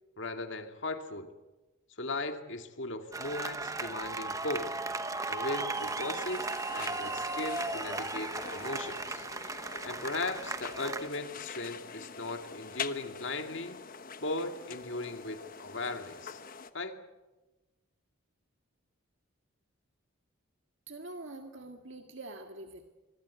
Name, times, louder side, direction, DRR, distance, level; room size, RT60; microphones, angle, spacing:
voice 1, 0.2-1.3 2.0-4.7 5.3-6.5 6.7-9.2 9.8-13.8 14.2-16.4 16.7-16.9, left 2 dB, 55° left, 6 dB, 2.3 m, -37 dB
sound 1, 3.1-11.1, right 3 dB, 15° right, 1.1 m, -36 dB
sound 2, 5.7-16.7, left 5 dB, 40° left, 1.2 m, -45 dB
voice 2, 20.9-22.9, right 2 dB, 60° right, 5 dB, 1.8 m, -45 dB
26.0 x 23.0 x 8.4 m, 1.1 s
head